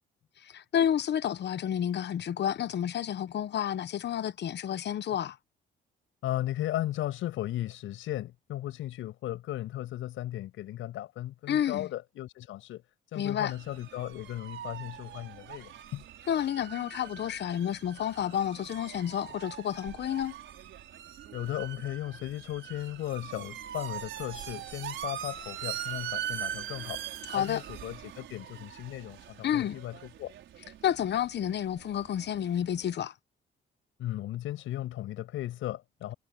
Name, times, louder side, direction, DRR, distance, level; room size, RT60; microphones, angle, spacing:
voice 1, 0.4-5.4 11.5-11.9 13.1-13.5 16.3-20.3 27.3-27.6 29.4-29.8 30.8-33.1, left 10 dB, 60° left, 1.1 m, -30 dB
voice 2, 6.2-12.8 13.1-16.0 21.3-27.0 27.3-30.3 34.0-36.1, left 14 dB, 85° left, 7.0 m, -36 dB
sound 1, 13.5-32.9, right 11 dB, 75° right, 4.9 m, -42 dB
cardioid pair, 90°, 20 cm